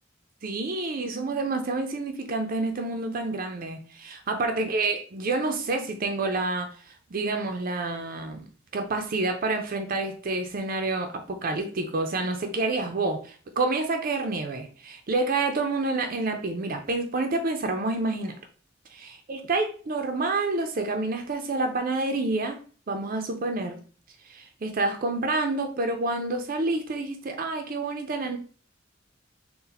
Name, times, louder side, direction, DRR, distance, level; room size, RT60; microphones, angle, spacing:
voice 1, 0.4-6.7 7.1-8.5 8.7-18.4 18.9-22.6 22.9-23.8 24.3-28.4, right 3 dB, 50° right, 0.5 m, -28 dB
3.9 x 2.1 x 4.1 m
head